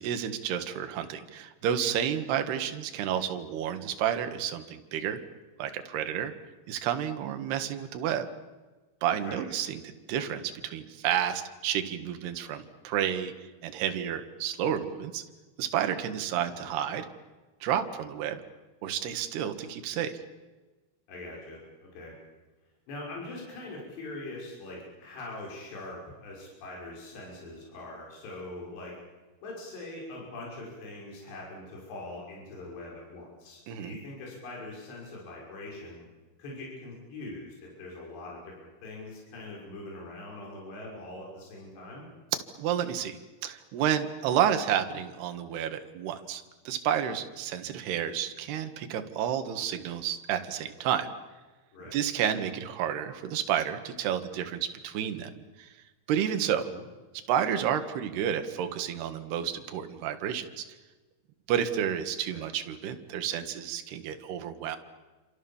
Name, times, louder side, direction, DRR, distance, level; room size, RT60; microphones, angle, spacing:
voice 1, 0.0-5.2 5.6-6.3 6.7-8.3 9.0-13.3 13.6-15.2 15.6-17.1 17.6-18.4 18.8-20.2 33.7-34.0 42.6-43.2 43.4-51.1 51.9-55.3 55.6-55.7 56.1-56.6 57.3-60.7 61.5-64.8, right 9 dB, 65° right, 8 dB, 3.6 m, -30 dB
voice 2, 21.1-22.2 22.9-28.9 29.4-36.1 36.4-42.1 51.7-52.0 56.5-56.8 62.3-62.4, left 2 dB, 65° left, -2 dB, 8.1 m, -42 dB
29.5 x 26.5 x 7.3 m, 1.2 s
omnidirectional pair, 5.3 m